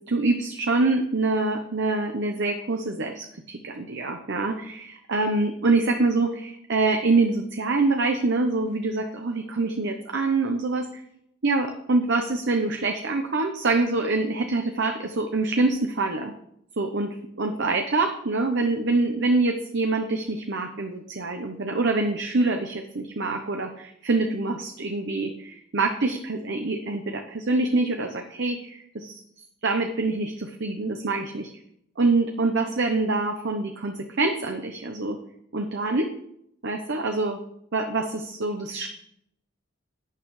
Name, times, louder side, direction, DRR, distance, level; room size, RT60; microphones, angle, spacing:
voice 1, 0.1-11.0 11.4-16.3 16.8-29.2 29.6-31.5 32.0-35.2 35.5-36.1 36.6-37.4 37.7-38.9, right 3 dB, 65° right, 4 dB, 0.9 m, -25 dB
11.5 x 9.4 x 3.2 m, 0.73 s
head